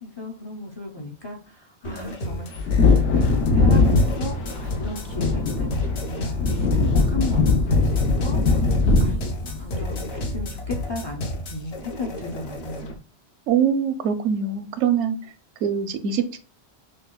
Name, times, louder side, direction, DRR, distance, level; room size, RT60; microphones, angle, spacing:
voice 1, 0.0-2.7 3.6-8.4 9.0-13.0, left 2 dB, 40° left, 0.4 m, -35 dB
sound 1, 1.8-13.0, left 1 dB, 65° left, 1.0 m, -32 dB
Wind / Thunder, 2.5-10.8 11.1-11.2, left 3 dB, 90° left, 1.1 m, -21 dB
voice 2, 13.5-15.2 15.6-16.4, right 7 dB, 85° right, 0.9 m, -23 dB
6.2 x 2.2 x 2.3 m
omnidirectional pair, 1.2 m